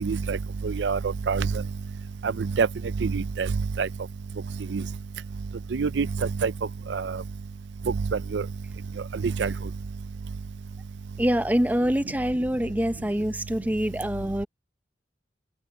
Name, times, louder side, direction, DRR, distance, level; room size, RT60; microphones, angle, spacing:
voice 1, 0.0-0.4 0.6-1.0 1.3-1.5 2.6-2.7 3.0-3.5 3.8-3.9 4.7-4.8 5.7-6.1 6.4-6.5 6.9-7.1 8.3-8.4 9.4-9.5, right 5 dB, 90° right, 0.5 m, -25 dB
voice 2, 11.2-14.5, equal, 10° right, 0.7 m, -25 dB
head